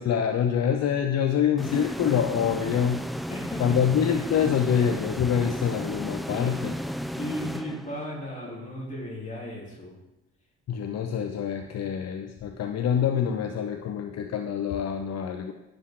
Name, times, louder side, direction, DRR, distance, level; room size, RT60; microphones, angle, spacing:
voice 1, 0.0-3.1 3.6-6.7 10.7-15.5, left 8 dB, 60° left, 6 dB, 0.7 m, -26 dB
sound 1, 1.6-8.3, equal, ahead, 0.3 m, -34 dB
voice 2, 3.3-3.9 6.3-6.8 7.1-10.0, equal, 25° left, -4 dB, 3.3 m, -36 dB
11.0 x 6.8 x 3.7 m, 0.98 s
cardioid pair, 90°, 30 cm